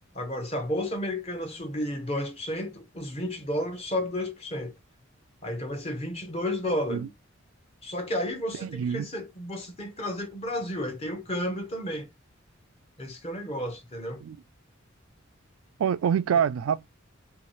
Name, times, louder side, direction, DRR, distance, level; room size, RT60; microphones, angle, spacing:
voice 1, 0.1-4.8 5.4-7.1 7.8-12.1 13.0-14.2, left 1 dB, 30° left, 0.7 m, -32 dB
voice 2, 8.7-9.1 14.2-14.4 15.8-16.9, right 8 dB, 85° right, 0.3 m, -25 dB
2.8 x 2.3 x 3.0 m
head